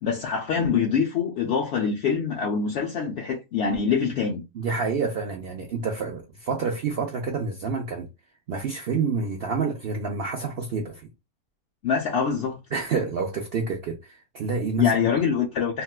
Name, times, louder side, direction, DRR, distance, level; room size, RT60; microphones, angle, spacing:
voice 1, 0.0-4.4 11.8-12.6 14.8-15.8, left 6 dB, 65° left, 0.7 m, -24 dB
voice 2, 4.5-8.1 8.5-11.1 12.7-15.1, right 4 dB, 70° right, 0.5 m, -28 dB
3.6 x 2.2 x 2.3 m
omnidirectional pair, 1.6 m